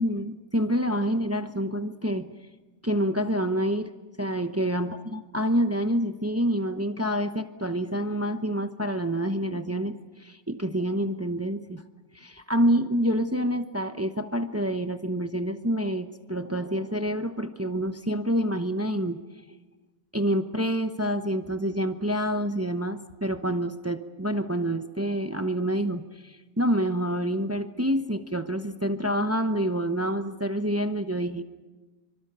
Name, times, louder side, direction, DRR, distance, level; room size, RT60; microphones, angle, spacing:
voice 1, 0.0-2.3 2.8-3.9 4.2-11.8 12.1-19.2 20.1-31.4, equal, 20° right, 8 dB, 0.4 m, -27 dB
25.0 x 24.5 x 6.9 m, 1.2 s
omnidirectional pair, 2.0 m